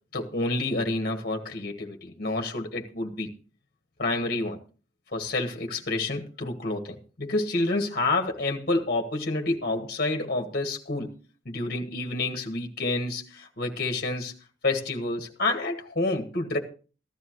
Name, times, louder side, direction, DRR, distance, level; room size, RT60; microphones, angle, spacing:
voice 1, 0.1-3.3 4.0-4.6 5.1-11.1 11.4-14.3 14.6-16.6, left 2 dB, 50° left, 1.5 m, -28 dB
15.0 x 12.5 x 3.1 m
head